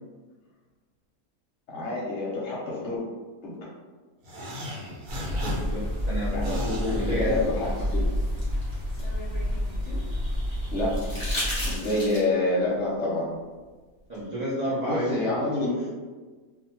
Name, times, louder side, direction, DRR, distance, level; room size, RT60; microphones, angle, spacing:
voice 1, 1.7-3.0 3.4-3.6 6.3-8.0 10.7-11.2 11.6-13.3 14.9-15.7, left 2 dB, 60° left, -5 dB, 0.8 m, -27 dB
sound 1, 4.2-7.9, left 1 dB, 80° right, 1.2 m, -37 dB
sound 2, 5.1-11.8, equal, 35° right, 0.7 m, -29 dB
voice 2, 5.3-7.4 14.1-15.7, right 1 dB, 65° right, -9 dB, 0.4 m, -32 dB
sound 3, 7.8-10.0 10.9-12.5 14.1-14.2, left 1 dB, 30° left, 0.9 m, -35 dB
2.5 x 2.2 x 2.8 m, 1.4 s
omnidirectional pair, 1.6 m